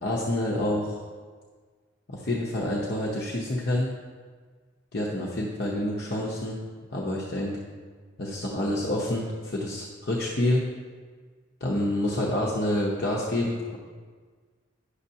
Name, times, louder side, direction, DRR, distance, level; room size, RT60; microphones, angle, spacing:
voice 1, 0.0-1.0 2.1-3.9 4.9-6.6 6.9-7.6 8.2-10.6 11.6-13.8, left 1 dB, 55° left, -4 dB, 0.8 m, -28 dB
9.8 x 6.5 x 2.8 m, 1.5 s
head